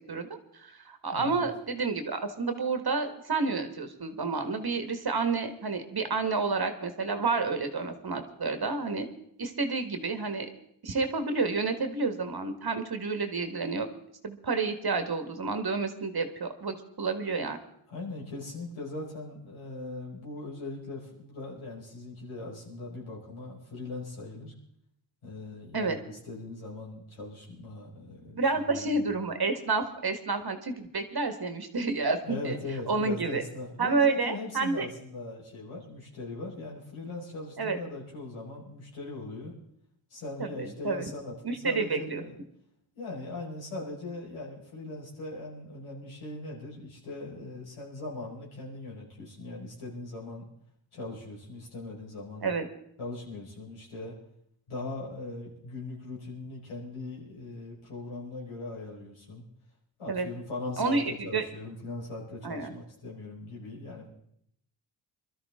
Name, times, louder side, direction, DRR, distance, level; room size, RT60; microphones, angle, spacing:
voice 1, 0.5-9.1 9.4-10.5 10.8-13.9 14.2-17.6 25.7-26.0 28.4-32.6 32.9-33.4 33.8-34.9 37.6-37.8 40.4-41.1 41.4-42.2 52.4-52.7 60.1-60.3 60.8-61.4 62.4-62.7, right 4 dB, 50° right, 7 dB, 1.7 m, -29 dB
voice 2, 1.1-1.5 17.9-24.5 25.2-29.0 32.2-39.5 40.1-42.3 42.9-50.4 50.9-52.5 53.0-54.1 54.7-59.4 60.0-64.1, left 2 dB, 85° left, -4 dB, 5.0 m, -40 dB
22.5 x 13.0 x 3.7 m, 0.72 s
cardioid pair, 65°, 48 cm